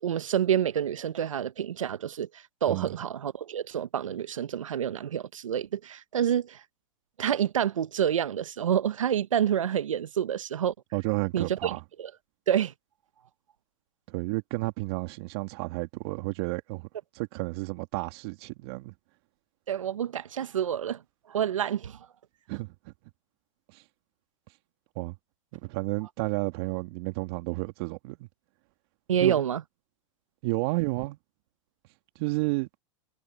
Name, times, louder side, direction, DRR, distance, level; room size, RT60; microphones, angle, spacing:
voice 1, 0.0-6.6 7.2-10.7 11.3-12.1 12.5-12.7 19.7-21.0 21.3-22.1 29.1-29.6, right 9 dB, 85° right, 1.3 m, -28 dB
voice 2, 10.9-11.8 14.1-16.9 17.1-18.9 22.5-22.9 23.7-23.8 24.9-25.2 25.5-28.3 29.2-29.5 30.4-31.2 32.1-32.7, right 24 dB, 55° right, 2.9 m, -31 dB
hypercardioid pair, 115°, 16 cm